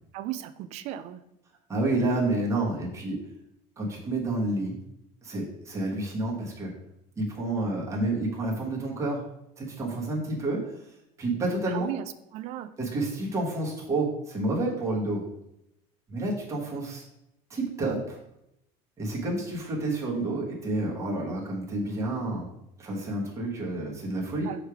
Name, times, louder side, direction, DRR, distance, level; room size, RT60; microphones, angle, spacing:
voice 1, 0.1-1.2 11.7-12.0 12.3-12.7 24.4-24.6, right 12 dB, 45° right, 12 dB, 0.4 m, -35 dB
voice 2, 1.7-3.2 3.8-4.8 5.2-6.7 7.2-9.2 9.6-10.8 11.2-11.9 12.8-15.2 16.1-17.0 17.5-18.2 19.0-22.5 22.8-24.6, right 2 dB, 20° right, -4 dB, 1.4 m, -29 dB
6.4 x 3.3 x 4.8 m, 0.82 s
cardioid pair, 165°, 16 cm